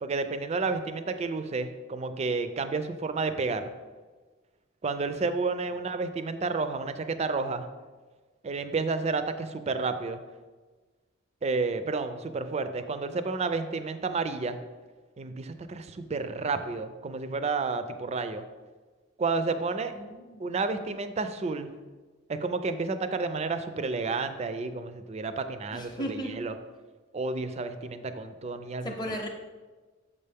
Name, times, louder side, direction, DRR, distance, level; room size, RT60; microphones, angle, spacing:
voice 1, 0.0-3.7 4.8-7.7 8.4-10.2 11.4-14.6 15.2-18.4 19.2-19.9 20.4-21.7 22.3-26.5 27.1-28.9, right 4 dB, 35° right, 10 dB, 0.4 m, -31 dB
voice 2, 19.9-20.4 25.7-26.4 28.8-29.3, equal, 20° left, 0 dB, 0.6 m, -36 dB
7.0 x 5.5 x 3.5 m, 1.3 s
head